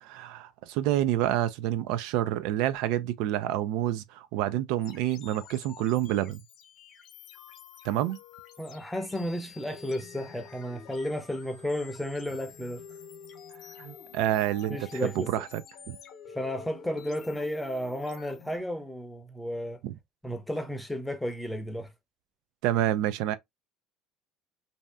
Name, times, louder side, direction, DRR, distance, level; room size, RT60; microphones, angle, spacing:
voice 1, 0.0-6.4 7.8-8.2 13.8-15.6 15.9-16.0 19.8-20.0 22.6-23.4, right 13 dB, 75° right, 0.3 m, -28 dB
sound 1, 4.8-18.6, left 7 dB, 55° left, 0.8 m, -49 dB
voice 2, 8.6-12.8 14.7-15.3 16.3-19.8 20.2-21.9, left 1 dB, 5° left, 0.6 m, -33 dB
2.6 x 2.2 x 3.3 m
cardioid pair, 120°, 0 cm